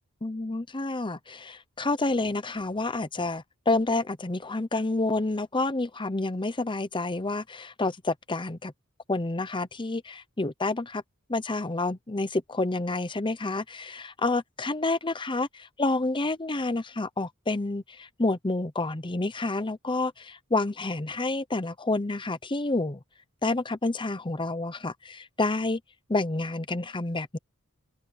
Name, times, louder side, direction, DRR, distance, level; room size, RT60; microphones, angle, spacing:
voice 1, 0.2-8.7 9.1-11.0 11.3-23.0 23.4-25.8 26.1-27.4, left 2 dB, 20° left, 0.8 m, -29 dB
head